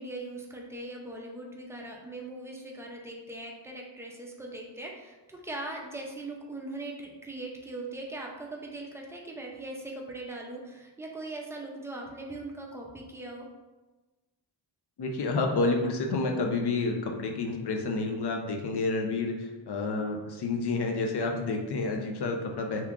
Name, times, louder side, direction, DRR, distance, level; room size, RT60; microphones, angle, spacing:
voice 1, 0.0-13.5, right 2 dB, 5° right, -1 dB, 0.4 m, -40 dB
voice 2, 15.0-19.3 19.7-22.9, left 3 dB, 60° left, 2 dB, 0.6 m, -29 dB
2.9 x 2.3 x 3.5 m, 1.2 s
wide cardioid pair, 120°, 47 cm